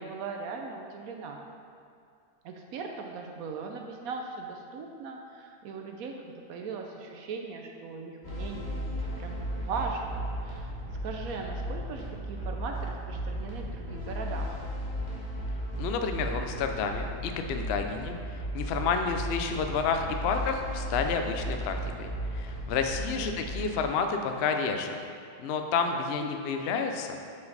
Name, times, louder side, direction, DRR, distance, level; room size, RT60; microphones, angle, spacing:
voice 1, 0.0-1.4 2.4-10.7 11.0-14.6 23.2-23.3 26.2-26.3 26.6-26.7, right 4 dB, 70° right, 2 dB, 1.0 m, -39 dB
sound 1, 8.2-23.6, equal, 30° left, 1.4 m, -35 dB
voice 2, 15.8-25.0 25.4-27.2, left 5 dB, 70° left, 5 dB, 0.6 m, -30 dB
7.0 x 5.4 x 4.0 m, 2.3 s
omnidirectional pair, 1.7 m